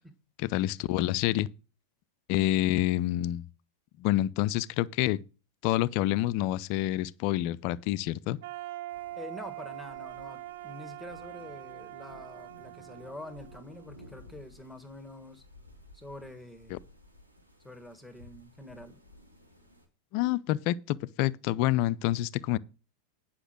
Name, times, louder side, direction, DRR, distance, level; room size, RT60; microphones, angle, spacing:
voice 1, 0.4-1.5 2.3-3.5 4.0-5.2 5.6-8.4 16.7-16.8 20.1-22.6, left 15 dB, 45° left, 0.5 m, -27 dB
sound 1, 8.4-14.3, right 16 dB, 55° right, 0.5 m, -43 dB
sound 2, 8.9-19.9, left 1 dB, 90° right, 2.7 m, -55 dB
voice 2, 9.2-15.4 15.9-16.9 17.6-19.0, left 1 dB, ahead, 1.5 m, -46 dB
9.9 x 5.9 x 6.3 m
figure-of-eight pair, 90°, 0 cm